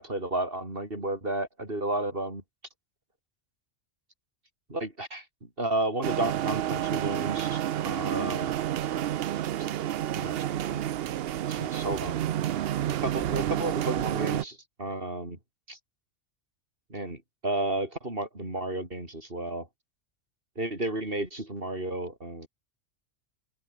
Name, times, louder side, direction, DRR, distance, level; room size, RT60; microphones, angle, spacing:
voice 1, 0.0-2.4 4.7-8.6 9.6-9.7 10.1-10.8 11.5-12.2 13.0-15.4 15.7-15.8 16.9-19.7 20.6-22.5, right 1 dB, 45° right, 5.3 m, -32 dB
sound 1, 6.0-14.4, right 11 dB, 60° right, 0.7 m, -30 dB
omnidirectional pair, 1.3 m